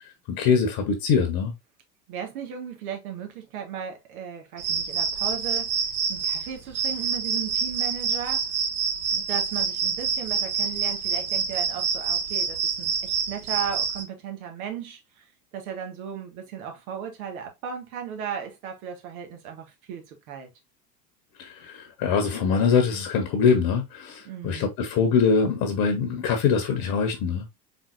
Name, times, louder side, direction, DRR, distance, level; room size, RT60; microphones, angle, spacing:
voice 1, 0.3-1.5 21.4-27.4, left 6 dB, 45° left, 1.3 m, -23 dB
voice 2, 2.1-5.8 6.1-8.5 9.1-15.3 15.5-20.5 24.2-24.7, right 8 dB, 60° right, 1.8 m, -36 dB
sound 1, 4.6-14.0, right 6 dB, 30° right, 1.1 m, -27 dB
4.4 x 4.1 x 2.6 m
figure-of-eight pair, 80°, 49 cm